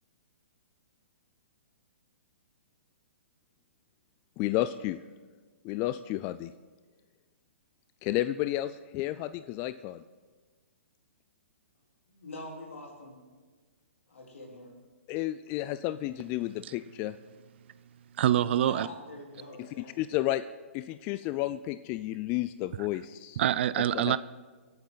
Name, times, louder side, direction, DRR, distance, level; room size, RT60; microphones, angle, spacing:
voice 1, 4.4-5.0 5.6-6.5 8.0-10.0 15.1-17.2 20.0-20.4 20.7-23.4 23.9-24.1, left 15 dB, 30° left, 13 dB, 0.3 m, -31 dB
voice 2, 12.1-13.2 14.1-14.8 18.6-20.1, left 1 dB, 75° left, -1 dB, 3.8 m, -45 dB
voice 3, 18.2-18.9 22.8-22.9 23.4-24.2, right 11 dB, 55° right, 17 dB, 0.4 m, -25 dB
24.0 x 8.8 x 4.0 m, 1.4 s
hypercardioid pair, 125°, 7 cm